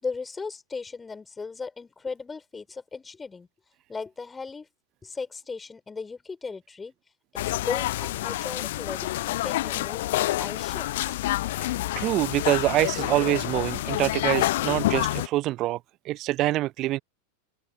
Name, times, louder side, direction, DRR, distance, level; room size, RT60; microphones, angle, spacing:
voice 1, 0.0-3.5 3.9-4.7 5.0-6.9 7.6-11.1, left 4 dB, 15° left, 7.1 m, -37 dB
sound 1, 7.4-15.3, left 16 dB, 55° left, 1.0 m, -28 dB
voice 2, 11.6-15.8 16.0-17.0, right 16 dB, 35° right, 1.0 m, -25 dB
figure-of-eight pair, 90°, 0 cm